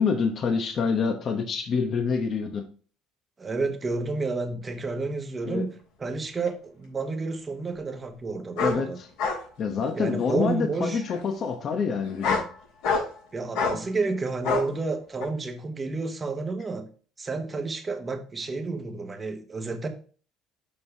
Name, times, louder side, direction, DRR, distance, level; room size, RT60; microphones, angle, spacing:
voice 1, 0.0-2.6 5.4-5.6 8.6-9.1 9.6-12.4, left 5 dB, 40° left, 5 dB, 1.0 m, -26 dB
voice 2, 3.4-5.7 6.0-9.0 9.9-11.0 13.3-16.9 17.2-19.9, right 3 dB, 20° right, 6 dB, 1.1 m, -30 dB
sound 1, 6.5-6.6 8.6-8.8 9.2-9.4 9.8-10.3 11.1-11.2 12.0-12.5 12.8-13.2 13.5-13.8 14.4-14.7 15.2-15.3, left 4 dB, 80° left, 3.8 m, -26 dB
6.9 x 5.5 x 3.3 m, 0.41 s
cardioid pair, 120°, 0 cm